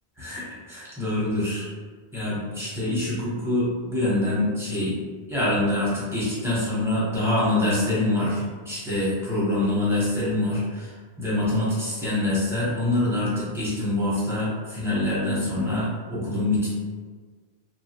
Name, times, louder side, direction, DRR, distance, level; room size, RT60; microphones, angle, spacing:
voice 1, 0.2-1.7 2.1-5.0 5.3-10.9 11.2-16.7, left 1 dB, 5° right, -8 dB, 0.8 m, -25 dB
2.8 x 2.3 x 2.9 m, 1.5 s
omnidirectional pair, 1.0 m